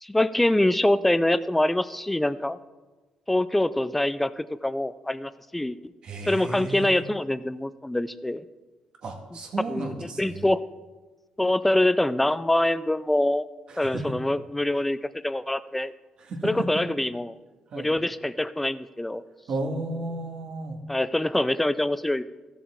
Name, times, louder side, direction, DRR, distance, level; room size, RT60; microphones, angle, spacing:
voice 1, 0.0-2.6 3.3-5.8 6.3-8.4 9.7-10.6 11.4-13.5 13.8-15.9 16.4-17.4 17.7-19.2 20.9-22.2, left 1 dB, 5° left, 15 dB, 0.3 m, -25 dB
voice 2, 6.0-7.0 9.0-10.4 13.7-14.1 16.2-16.5 17.7-17.9 19.5-20.8, right 2 dB, 50° right, 3 dB, 1.6 m, -33 dB
15.0 x 7.0 x 3.5 m, 1.2 s
cardioid pair, 135°, 2 cm